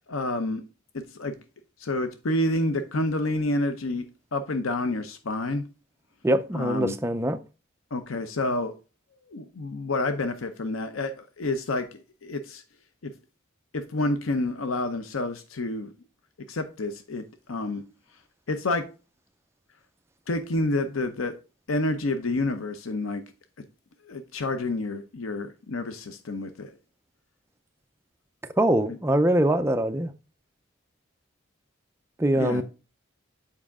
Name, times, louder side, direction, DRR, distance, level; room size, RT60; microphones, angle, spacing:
voice 1, 0.1-0.6 0.9-1.3 1.8-4.1 4.3-5.6 6.5-7.0 7.9-8.7 9.3-12.6 13.0-13.1 13.7-15.9 16.5-17.8 18.5-18.8 20.3-21.3 21.7-23.2 24.0-26.7 32.3-32.6, left 2 dB, 90° left, 0.7 m, -29 dB
voice 2, 6.2-7.4 28.6-30.1 32.2-32.6, right 1 dB, 15° right, 0.4 m, -23 dB
7.4 x 4.9 x 3.6 m
head